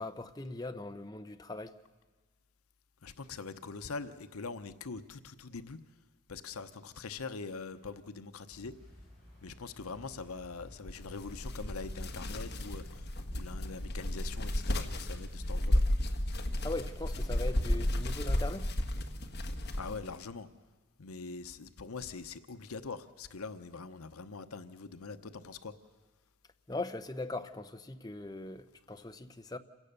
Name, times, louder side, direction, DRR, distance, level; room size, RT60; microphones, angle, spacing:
voice 1, 0.0-1.7 16.6-18.7 26.7-29.6, left 2 dB, 20° left, 0.7 m, -40 dB
voice 2, 3.0-5.8 6.3-8.7 9.4-13.0 13.3-15.8 19.7-20.5 21.0-25.7, left 4 dB, 85° left, 0.9 m, -43 dB
sound 1, 8.5-17.6, left 1 dB, ahead, 7.9 m, -56 dB
sound 2, 10.9-20.1, left 1 dB, 50° left, 1.5 m, -33 dB
27.5 x 17.0 x 6.7 m
head